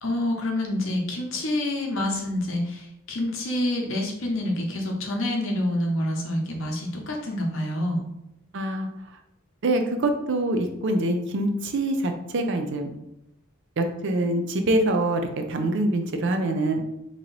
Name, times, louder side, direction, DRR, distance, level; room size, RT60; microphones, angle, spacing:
voice 1, 0.0-8.0, left 1 dB, 65° left, 1 dB, 0.8 m, -27 dB
voice 2, 8.5-8.9 9.6-12.9 13.8-16.8, right 1 dB, 60° right, 5 dB, 0.5 m, -25 dB
3.0 x 2.9 x 3.9 m, 0.85 s
head